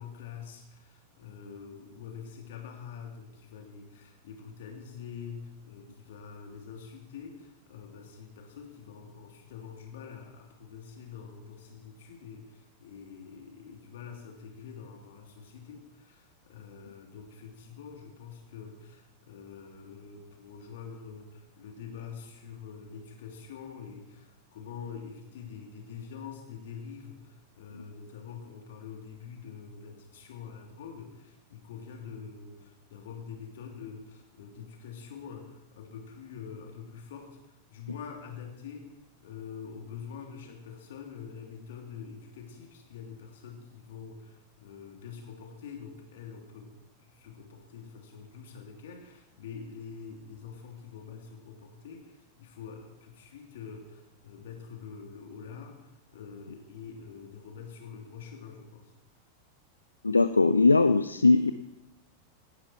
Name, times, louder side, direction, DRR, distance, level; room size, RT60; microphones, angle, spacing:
voice 1, 0.0-38.9 39.2-46.7 47.0-58.9, left 6 dB, 55° left, 1 dB, 3.1 m, -45 dB
voice 2, 60.0-61.5, left 3 dB, 80° left, 12 dB, 0.5 m, -20 dB
18.0 x 11.5 x 4.7 m, 0.92 s
figure-of-eight pair, 90°, 0 cm